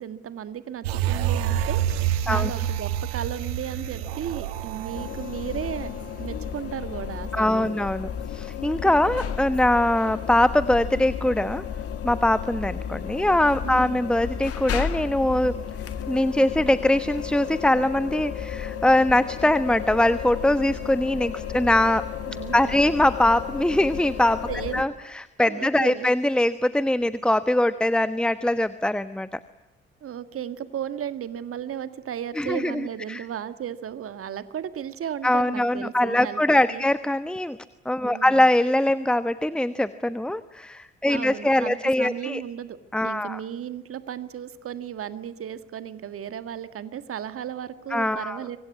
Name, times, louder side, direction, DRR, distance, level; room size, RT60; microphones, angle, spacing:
voice 1, 0.0-5.9 6.2-7.9 13.6-14.0 22.3-22.8 24.5-24.8 25.5-26.1 30.0-36.4 36.7-36.8 38.0-38.4 41.1-42.8 43.0-48.6, right 9 dB, 45° right, 12 dB, 1.8 m, -35 dB
sound 1, 0.8-6.5 6.8-6.9, right 10 dB, 75° right, 1.6 m, -28 dB
sound 2, 4.9-24.9, left 8 dB, 50° left, 2.2 m, -33 dB
voice 2, 7.3-11.6 12.0-15.5 16.1-22.1 22.5-24.5 24.7-29.4 32.4-33.2 35.2-37.6 37.8-42.4 42.9-43.4 47.9-48.4, left 1 dB, 5° left, 14 dB, 1.1 m, -22 dB
27.0 x 25.0 x 8.5 m, 0.96 s
figure-of-eight pair, 45°, 31 cm